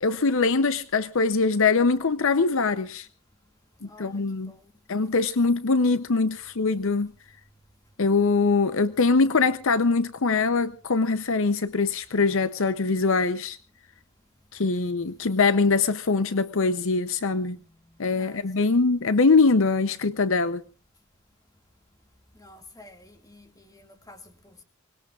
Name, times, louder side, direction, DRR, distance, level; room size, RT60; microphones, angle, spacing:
voice 1, 0.0-3.1 3.8-4.5 4.9-7.1 8.0-13.6 14.5-17.6 18.0-20.6, left 4 dB, 60° left, 0.7 m, -23 dB
voice 2, 3.8-4.7 14.3-14.6 15.2-15.3 17.2-18.7 22.3-24.6, left 2 dB, 15° left, 2.1 m, -52 dB
24.5 x 20.0 x 2.5 m
head